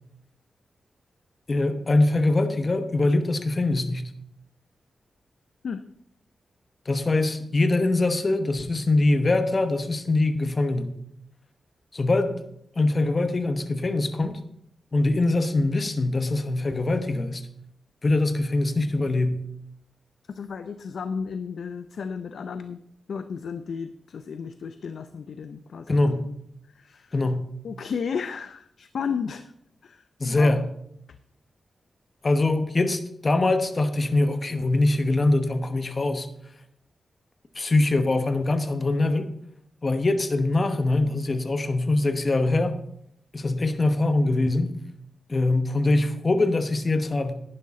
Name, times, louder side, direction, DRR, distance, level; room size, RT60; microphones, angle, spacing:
voice 1, 1.5-4.1 6.9-10.9 11.9-12.4 12.8-14.4 14.9-17.4 18.0-19.4 25.9-26.2 27.1-27.5 30.2-30.6 32.2-36.3 37.5-39.3 39.8-42.8 43.3-44.7 45.3-47.3, left 2 dB, 40° left, 9 dB, 1.1 m, -23 dB
voice 2, 20.3-22.8 23.1-26.4 26.7-27.1 27.6-29.5 29.8-30.0 30.3-30.6, left 6 dB, 80° left, 10 dB, 0.5 m, -33 dB
11.0 x 10.5 x 3.7 m, 0.73 s
cardioid pair, 80°, 0 cm